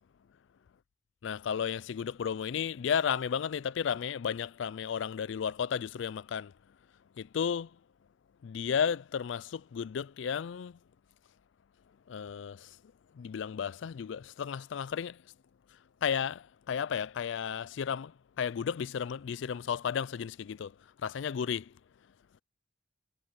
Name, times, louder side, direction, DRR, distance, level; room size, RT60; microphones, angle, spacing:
voice 1, 1.2-6.5 7.2-7.8 8.4-10.8 12.1-12.8 13.1-15.2 16.0-21.7, left 7 dB, 70° left, 0.4 m, -33 dB
head